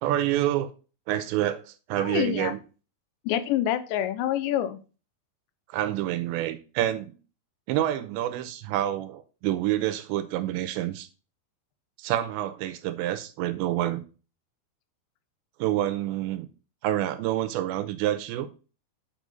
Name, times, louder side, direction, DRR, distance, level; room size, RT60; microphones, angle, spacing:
voice 1, 0.0-0.7 1.1-2.6 5.7-7.2 7.7-11.1 12.0-14.0 15.6-16.5 16.8-18.5, right 13 dB, 90° right, 2.9 m, -28 dB
voice 2, 2.0-2.5 3.3-4.8, left 11 dB, 85° left, 3.0 m, -27 dB
6.3 x 5.5 x 5.2 m
omnidirectional pair, 5.1 m